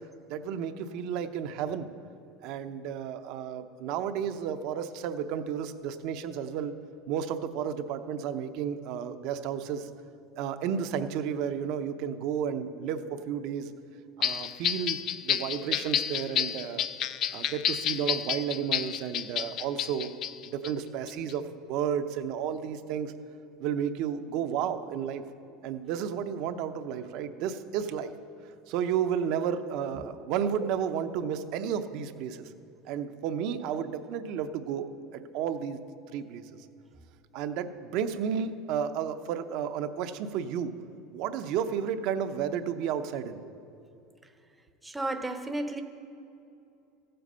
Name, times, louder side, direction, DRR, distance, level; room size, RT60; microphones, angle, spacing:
voice 1, 0.3-1.9 2.4-6.7 7.1-9.9 10.4-13.7 14.2-16.9 17.3-20.1 20.4-23.1 23.6-25.2 25.6-28.1 28.7-32.5 32.9-35.8 36.1-36.5 37.3-40.7 41.1-43.4, right 8 dB, 60° right, 9 dB, 0.7 m, -32 dB
sound 1, 14.2-20.7 21.1-21.3, left 10 dB, 45° left, 0.4 m, -30 dB
voice 2, 44.8-45.8, right 2 dB, 10° right, 6 dB, 0.7 m, -34 dB
15.0 x 7.8 x 5.5 m, 2.7 s
supercardioid pair, 125°, 0 cm